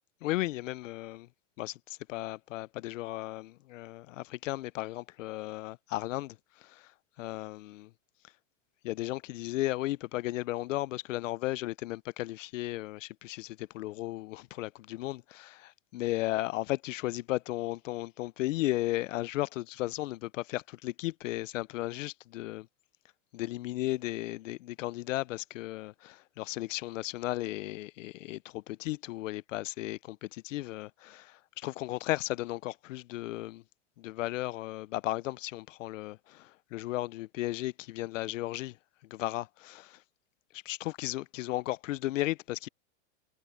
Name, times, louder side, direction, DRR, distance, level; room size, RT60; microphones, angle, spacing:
voice 1, 0.2-1.3 1.6-6.9 7.2-7.9 8.8-22.7 23.3-33.6 34.0-38.8 39.1-40.0 40.5-42.7, left 17 dB, 80° left, 0.6 m, -35 dB
supercardioid pair, 145°, 38 cm